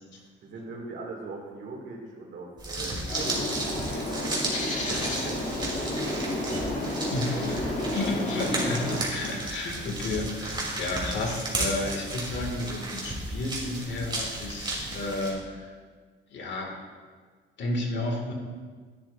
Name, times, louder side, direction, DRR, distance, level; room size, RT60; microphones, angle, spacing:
voice 1, 0.1-4.4 4.9-7.8, right 2 dB, 70° right, -1 dB, 2.0 m, -41 dB
sound 1, 2.6-15.3, right 2 dB, 20° right, 2.8 m, -34 dB
Bird, 3.1-9.0, left 1 dB, 40° left, 2.2 m, -31 dB
voice 2, 7.9-15.7 16.3-16.7 17.6-18.3, left 2 dB, 65° left, 1 dB, 1.8 m, -32 dB
10.5 x 10.0 x 2.4 m, 1.5 s
cardioid pair, 90°, 20 cm